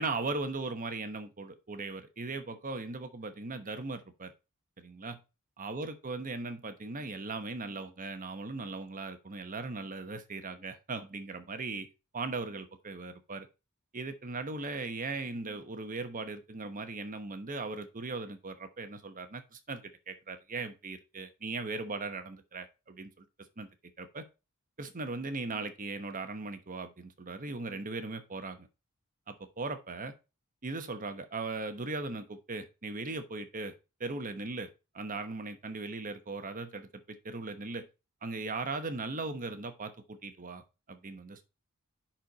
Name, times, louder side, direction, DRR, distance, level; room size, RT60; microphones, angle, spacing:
voice 1, 0.0-4.3 4.8-5.2 5.6-11.9 12.1-13.5 13.9-23.2 23.6-23.7 24.0-24.2 24.8-28.7 29.3-30.1 30.6-33.7 34.0-37.9 38.2-40.6 40.9-41.5, right 3 dB, 40° right, 9 dB, 1.1 m, -38 dB
10.0 x 4.4 x 4.0 m, 0.29 s
head